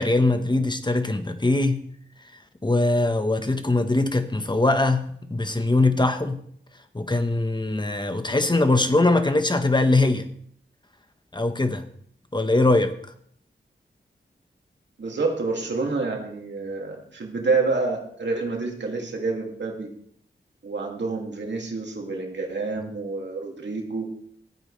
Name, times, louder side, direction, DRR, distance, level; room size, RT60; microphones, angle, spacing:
voice 1, 0.0-1.9 2.6-6.4 6.9-10.3 11.3-11.8 12.3-12.9, left 2 dB, 25° left, 8 dB, 1.3 m, -22 dB
voice 2, 15.0-19.9 20.6-24.1, right 3 dB, 70° right, 0 dB, 2.5 m, -28 dB
15.0 x 8.9 x 3.3 m, 0.65 s
cardioid pair, 50°, 19 cm